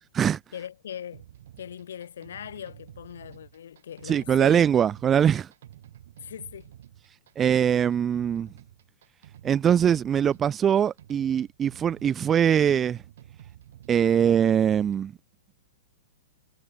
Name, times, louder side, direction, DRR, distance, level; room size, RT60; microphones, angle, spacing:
voice 1, 0.5-1.3 1.6-4.7 6.2-6.7, left 9 dB, 75° left, 2.9 m, -40 dB
sound 1, 1.1-15.1, right 12 dB, 55° right, 3.0 m, -50 dB
voice 2, 4.1-5.5 7.4-8.5 9.4-13.0 13.9-15.1, right 8 dB, 10° right, 0.4 m, -22 dB
supercardioid pair, 180°, 0 cm